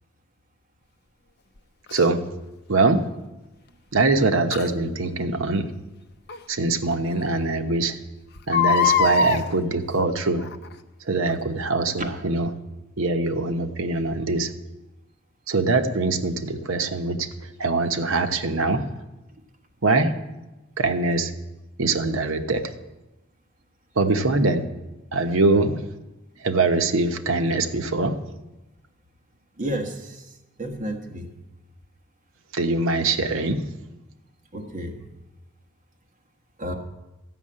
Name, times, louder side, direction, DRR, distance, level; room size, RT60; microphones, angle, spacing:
Crying sobbing, 1.9-2.0 4.5-4.7 6.3-6.4 6.9-7.0 7.2-7.3 8.4-9.4 10.4-10.7 11.3-11.4, left 5 dB, 50° left, 0.6 m, -21 dB
voice 1, 1.9-2.2 2.7-3.0 3.9-5.7 6.5-8.0 8.5-10.5 11.0-12.5 13.0-14.5 15.5-17.3 17.6-18.9 19.8-20.1 20.8-21.3 21.8-22.7 24.0-24.6 25.1-25.8 26.4-28.2 32.5-33.6, right 3 dB, 65° right, 7 dB, 0.9 m, -23 dB
voice 2, 29.6-30.2 30.6-31.3 34.5-34.9 36.6-36.7, right 1 dB, 35° right, 3 dB, 1.3 m, -31 dB
13.0 x 6.4 x 8.7 m, 1.0 s
head